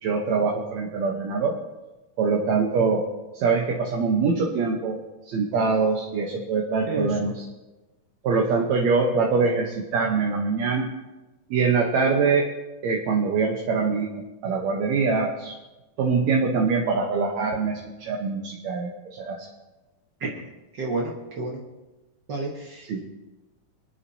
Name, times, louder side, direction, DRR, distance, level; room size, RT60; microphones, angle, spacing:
voice 1, 0.0-1.6 2.2-3.1 3.3-5.0 5.3-7.5 8.2-10.9 11.5-12.5 12.8-14.1 14.4-15.6 16.0-19.5 22.9-23.0, right 4 dB, 65° right, 0 dB, 2.0 m, -23 dB
voice 2, 6.8-7.3 20.4-20.5 20.8-21.6 22.3-23.0, right 2 dB, 80° right, -2 dB, 0.9 m, -31 dB
24.5 x 9.7 x 2.8 m, 1.1 s
omnidirectional pair, 4.0 m